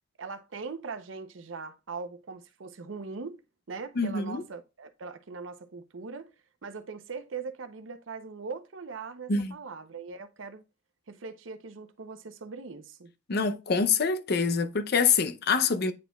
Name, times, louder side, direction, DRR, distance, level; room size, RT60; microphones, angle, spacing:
voice 1, 0.2-3.4 3.7-6.3 6.6-10.6 11.1-13.1, right 4 dB, 85° right, 0.7 m, -40 dB
voice 2, 4.0-4.4 9.3-9.5 13.3-15.9, left 5 dB, 55° left, 0.6 m, -25 dB
9.5 x 4.3 x 2.3 m
head